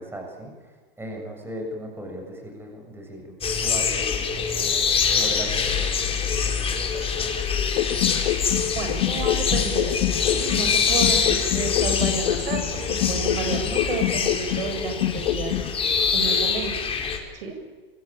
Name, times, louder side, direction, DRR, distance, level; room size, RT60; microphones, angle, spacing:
voice 1, 0.0-7.3, equal, 5° right, 2 dB, 7.2 m, -38 dB
sound 1, 3.4-17.2, left 6 dB, 20° left, 4.7 m, -24 dB
sound 2, 7.8-10.7 11.0-14.7 15.0-15.7, left 15 dB, 60° left, 1.9 m, -26 dB
voice 2, 8.7-9.9 10.2-12.6 13.1-15.5 16.1-16.8 17.3-17.6, right 5 dB, 70° right, 6 dB, 7.4 m, -31 dB
27.5 x 24.0 x 8.9 m, 1.5 s
hypercardioid pair, 135°, 30 cm